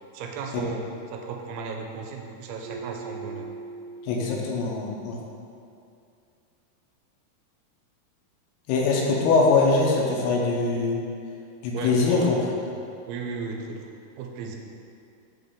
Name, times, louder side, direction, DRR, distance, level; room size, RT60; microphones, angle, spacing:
voice 1, 0.1-3.5 11.7-12.8 13.1-14.6, right 4 dB, 85° right, 2 dB, 2.6 m, -35 dB
Keyboard (musical), 2.6-5.4, right 4 dB, 60° right, 1.7 m, -41 dB
voice 2, 4.0-5.2 8.7-11.0 11.6-12.4, left 3 dB, 85° left, -1 dB, 2.8 m, -22 dB
7.6 x 3.9 x 3.6 m, 2.5 s
omnidirectional pair, 4.5 m